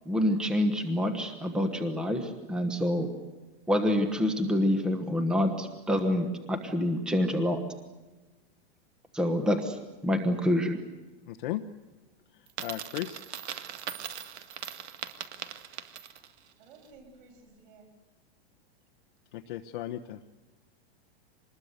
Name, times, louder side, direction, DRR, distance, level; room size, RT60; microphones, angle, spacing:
voice 1, 0.1-3.1 3.7-7.6 9.1-9.8 10.0-10.8, left 1 dB, ahead, 6 dB, 1.1 m, -27 dB
voice 2, 11.3-11.6 12.3-13.2 19.3-20.3, left 14 dB, 50° left, 4 dB, 1.0 m, -36 dB
Coin (dropping), 12.5-16.4, right 9 dB, 80° right, 2.0 m, -40 dB
voice 3, 16.6-17.9, right 3 dB, 55° right, 3 dB, 7.6 m, -54 dB
25.0 x 20.5 x 8.1 m, 1.2 s
supercardioid pair, 170°, 33 cm